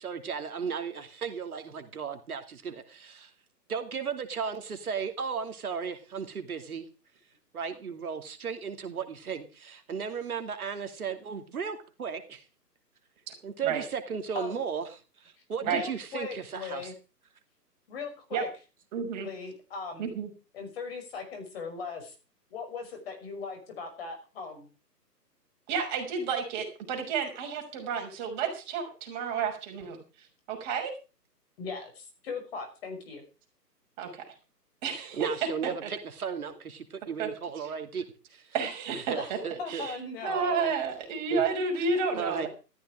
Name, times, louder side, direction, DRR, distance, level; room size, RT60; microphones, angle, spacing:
voice 1, 0.0-3.3 3.7-6.9 7.5-12.4 13.4-16.9 34.9-38.0 38.3-38.5 38.9-39.9 41.3-41.4 41.7-42.5, right 6 dB, 60° right, 7 dB, 2.5 m, -35 dB
voice 2, 15.6-16.9 17.9-18.5 19.1-20.1 20.5-22.1 22.5-24.7 31.6-33.2 39.2-39.3 39.6-40.7, left 4 dB, 35° left, 5 dB, 5.9 m, -39 dB
voice 3, 18.9-19.3 20.0-20.3 25.7-30.0 30.5-30.9 34.0-34.2 34.8-35.3 35.8-35.9 37.2-37.3 38.5-39.4 39.7-39.9 40.2-42.5, right 5 dB, 25° right, 2 dB, 6.1 m, -31 dB
14.0 x 14.0 x 4.9 m, 0.33 s
figure-of-eight pair, 145°, 49 cm